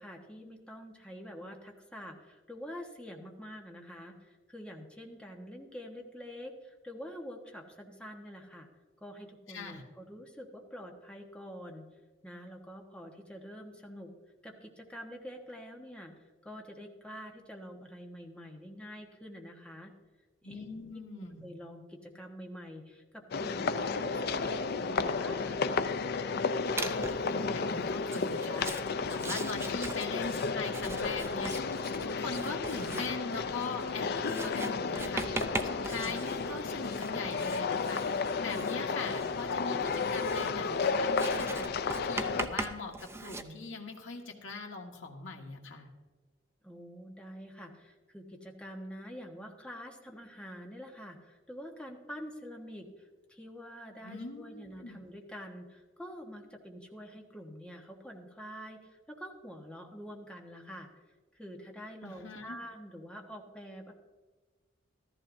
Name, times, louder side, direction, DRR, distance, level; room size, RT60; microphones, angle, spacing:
voice 1, 0.0-8.7 9.0-11.9 12.2-14.1 14.4-16.1 16.4-19.9 20.4-25.8 46.6-60.9 61.3-63.9, equal, 5° left, 1 dB, 1.2 m, -46 dB
voice 2, 9.5-9.8 20.4-21.4 27.2-28.7 29.1-31.8 32.0-45.9 54.0-55.0 62.0-62.6, left 3 dB, 85° left, 1 dB, 1.6 m, -41 dB
sound 1, 23.3-42.5, left 4 dB, 55° left, 0.5 m, -33 dB
Writing, 26.8-27.3 28.0-43.4, right 2 dB, 15° right, 0.5 m, -41 dB
14.0 x 14.0 x 2.6 m, 1.3 s
head